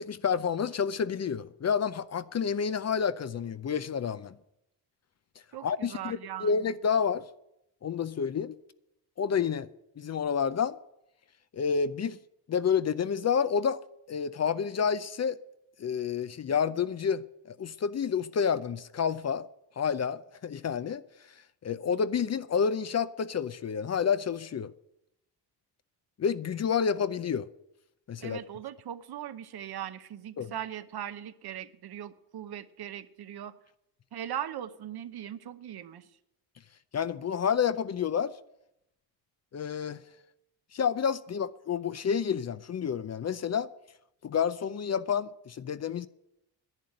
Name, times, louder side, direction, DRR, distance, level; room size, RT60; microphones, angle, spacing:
voice 1, 0.0-4.4 5.6-7.2 7.8-8.6 9.2-9.7 10.0-10.8 11.5-12.2 12.5-13.8 14.1-15.4 15.8-19.5 19.8-21.0 21.6-24.7 26.2-27.5 28.1-28.4 30.4-30.5 36.9-38.3 39.5-40.0 40.7-43.7 44.2-46.1, left 7 dB, 40° left, 0.6 m, -29 dB
voice 2, 5.5-6.6 28.2-33.5 34.1-36.1, right 10 dB, 60° right, 0.9 m, -39 dB
11.0 x 9.3 x 7.7 m
cardioid pair, 90°, 43 cm